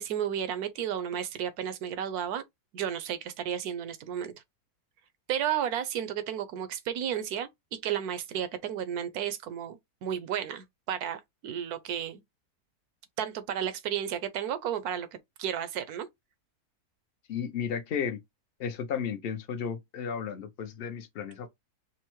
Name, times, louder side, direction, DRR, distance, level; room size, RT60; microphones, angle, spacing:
voice 1, 0.0-2.4 2.7-4.4 5.3-12.2 13.2-15.1 15.4-16.1, right 9 dB, 75° right, 1.1 m, -33 dB
voice 2, 17.3-18.2 18.6-21.5, left 7 dB, 60° left, 0.6 m, -33 dB
5.3 x 2.1 x 2.9 m
omnidirectional pair, 1.7 m